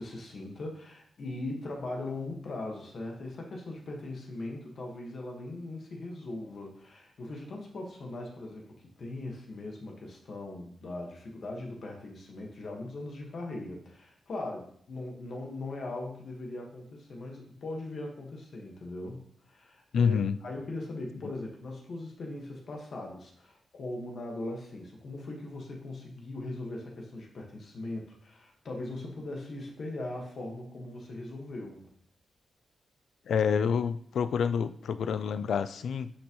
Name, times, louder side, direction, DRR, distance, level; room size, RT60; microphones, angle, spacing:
voice 1, 0.0-31.9, left 2 dB, 50° left, 0 dB, 1.5 m, -40 dB
voice 2, 19.9-20.4 33.3-36.1, left 6 dB, 75° left, 13 dB, 0.4 m, -27 dB
9.8 x 6.1 x 3.1 m, 0.64 s
wide cardioid pair, 170°, 0 cm